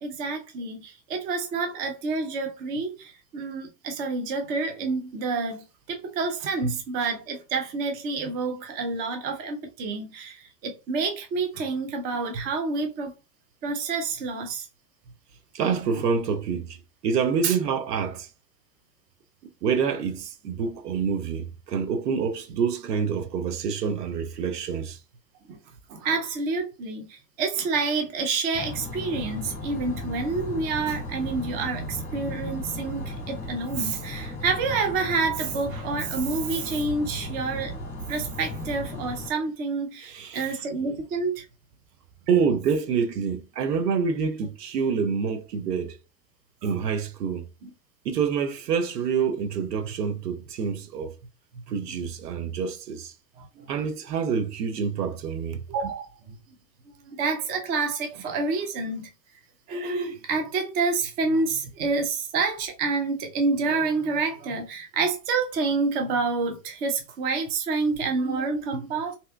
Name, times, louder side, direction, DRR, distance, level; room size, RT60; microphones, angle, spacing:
voice 1, 0.0-13.1 13.6-14.7 17.4-17.6 25.5-25.6 25.9-37.7 38.1-41.4 46.6-46.8 47.6-47.7 51.9-52.0 53.4-53.5 55.7-56.4 57.1-59.1 59.7-69.2, right 4 dB, 20° right, 0.4 m, -28 dB
voice 2, 15.5-16.8 17.0-18.3 19.6-25.0 40.0-40.5 42.3-46.0 46.6-47.5 48.0-51.2 51.5-53.1 53.6-55.6 68.7-68.8, right 6 dB, 70° right, 0.8 m, -27 dB
sound 1, 28.5-39.3, left 1 dB, 20° left, 1.4 m, -35 dB
3.2 x 2.9 x 2.2 m
hypercardioid pair, 95°, 49 cm